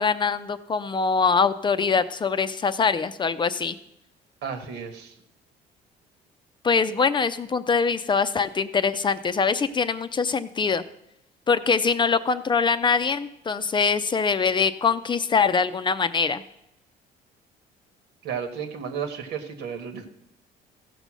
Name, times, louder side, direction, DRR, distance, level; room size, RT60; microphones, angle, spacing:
voice 1, 0.0-3.8 6.6-10.8 11.5-16.4, left 5 dB, 25° left, 11 dB, 0.5 m, -23 dB
voice 2, 4.4-5.1 18.2-20.1, right 7 dB, 80° right, 6 dB, 1.6 m, -33 dB
15.0 x 5.3 x 6.2 m, 0.81 s
cardioid pair, 110°, 17 cm